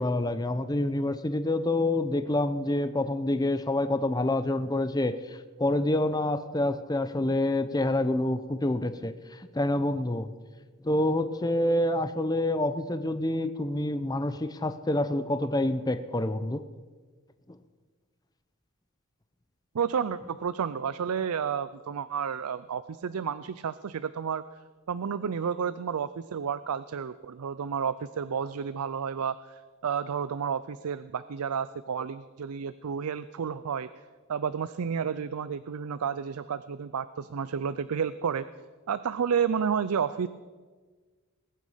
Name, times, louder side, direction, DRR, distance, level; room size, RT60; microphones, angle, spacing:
voice 1, 0.0-10.3 10.8-16.6, left 1 dB, 20° left, 11 dB, 0.6 m, -27 dB
voice 2, 19.7-24.4 24.9-33.9 34.3-38.5 38.9-40.3, right 7 dB, 85° right, 14 dB, 0.5 m, -31 dB
20.5 x 9.4 x 5.6 m, 1.4 s
head